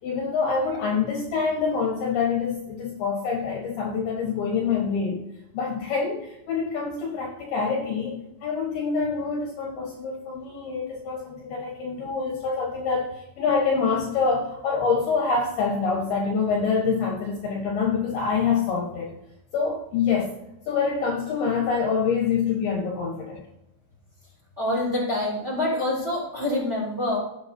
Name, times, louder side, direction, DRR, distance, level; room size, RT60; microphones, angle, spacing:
voice 1, 0.0-5.2 5.5-19.1 19.5-20.3 20.7-23.4, left 5 dB, 65° left, -1 dB, 2.8 m, -26 dB
voice 2, 24.6-27.2, left 1 dB, 15° right, -2 dB, 4.1 m, -26 dB
17.0 x 7.9 x 2.7 m, 0.87 s
omnidirectional pair, 5.6 m